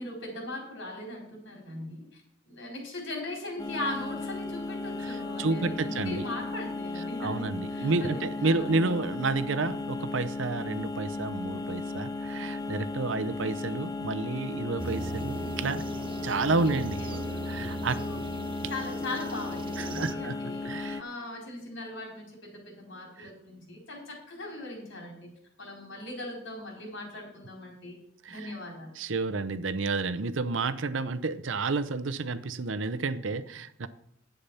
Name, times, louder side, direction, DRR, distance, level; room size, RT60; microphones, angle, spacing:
voice 1, 0.0-2.1 2.5-8.8 14.8-15.0 16.6-17.5 17.9-18.4 18.7-20.7 21.0-25.3 25.6-28.0 28.3-28.9, left 2 dB, 80° left, 0 dB, 4.5 m, -39 dB
sound 1, 3.6-21.0, left 3 dB, 20° left, 0.7 m, -36 dB
voice 2, 5.0-6.3 7.2-15.9 16.2-18.0 19.8-20.4 20.6-21.0 23.2-23.3 28.2-28.5 29.0-33.9, right 3 dB, 85° right, 12 dB, 0.7 m, -30 dB
sound 2, 14.8-20.1, right 3 dB, 30° right, 0.5 m, -39 dB
10.5 x 8.4 x 5.6 m, 0.74 s
head